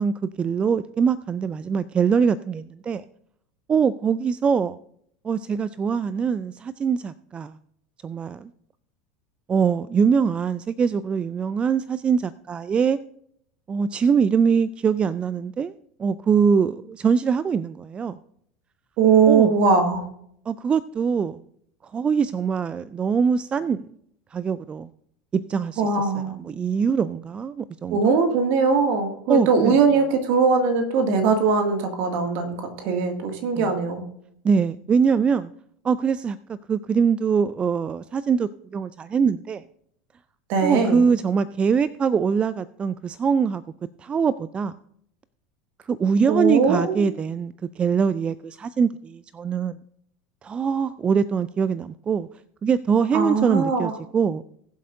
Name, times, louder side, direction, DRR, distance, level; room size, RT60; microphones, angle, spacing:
voice 1, 0.0-3.0 3.7-4.8 5.2-7.6 8.0-8.5 9.5-13.0 13.7-15.7 16.0-18.2 19.3-19.5 20.5-21.4 21.9-23.9 24.3-24.9 25.3-28.1 29.3-29.8 33.6-33.7 34.4-35.5 35.8-39.6 40.6-43.6 44.0-44.8 45.9-49.7 50.4-52.3 52.6-54.4, right 6 dB, 25° right, 17 dB, 0.4 m, -23 dB
voice 2, 19.0-20.0 25.8-26.4 27.9-34.0 40.5-41.0 46.3-47.1 53.1-53.9, right 5 dB, 55° right, 4 dB, 2.1 m, -20 dB
20.0 x 7.6 x 2.6 m, 0.69 s
figure-of-eight pair, 80°, 4 cm